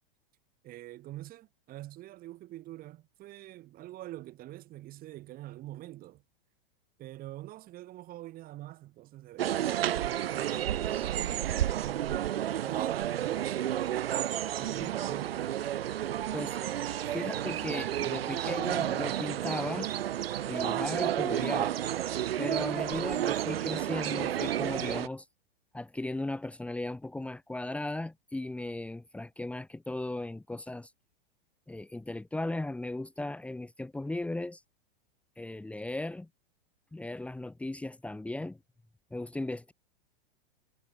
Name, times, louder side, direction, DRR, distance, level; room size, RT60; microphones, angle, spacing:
voice 1, 0.6-6.2 7.0-12.4 12.6-14.0 14.6-15.5, right 15 dB, 30° right, 3.1 m, -45 dB
sound 1, 9.4-25.1, right 11 dB, 90° right, 1.4 m, -31 dB
voice 2, 17.1-19.9 20.5-21.8 22.4-25.3 25.7-30.9 31.7-34.6 35.4-36.3 36.9-38.6 39.1-39.7, left 2 dB, 5° left, 2.3 m, -37 dB
supercardioid pair, 145°, 29 cm